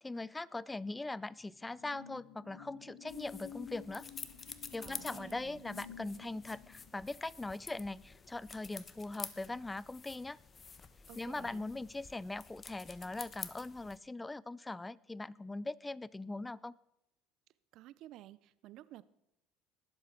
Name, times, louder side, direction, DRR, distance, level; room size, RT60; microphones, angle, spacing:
voice 1, 0.0-4.0 4.7-10.4 11.2-16.7, left 2 dB, 15° left, 22 dB, 0.4 m, -41 dB
sound 1, 1.0-9.8 10.2-10.4, left 9 dB, 80° left, 2.5 m, -53 dB
sound 2, 3.1-14.0, left 5 dB, 30° left, 1.0 m, -50 dB
voice 2, 4.8-5.6 11.1-11.7 17.7-19.0, right 14 dB, 65° right, 18 dB, 0.5 m, -53 dB
19.5 x 7.5 x 4.5 m, 0.84 s
hypercardioid pair, 80°, 0 cm